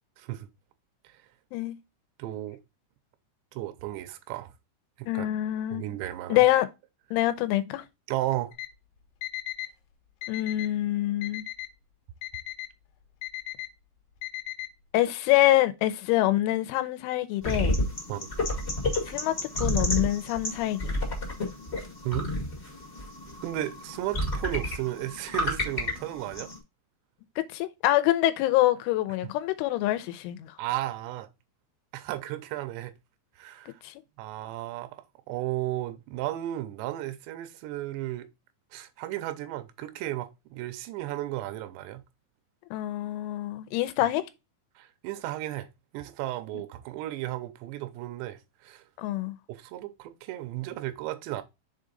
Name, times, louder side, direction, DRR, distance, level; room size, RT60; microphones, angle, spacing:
voice 1, 0.2-0.5 1.0-1.2 2.2-2.6 3.5-4.5 5.0-5.3 5.7-6.5 8.1-8.5 18.1-18.3 22.0-22.3 23.4-26.5 30.6-31.3 31.9-32.9 33.4-33.8 34.2-38.3 38.7-42.0 44.8-45.7 45.9-48.8 49.5-51.4, right 15 dB, 80° right, 2.7 m, -34 dB
voice 2, 5.1-5.8 6.3-6.7 7.1-7.8 10.3-11.5 14.9-17.7 19.1-21.0 27.5-30.6 33.8-33.9 42.7-44.2 49.0-49.4, left 15 dB, 90° left, 3.1 m, -25 dB
Alarm, 8.5-8.7 9.2-9.7 10.2-10.7 11.2-11.7 12.2-12.7 13.2-13.7 14.2-14.7, left 16 dB, 75° left, 2.5 m, -36 dB
sound 1, 17.4-26.6, left 1 dB, 55° left, 0.7 m, -31 dB
6.8 x 3.8 x 3.9 m
omnidirectional pair, 5.5 m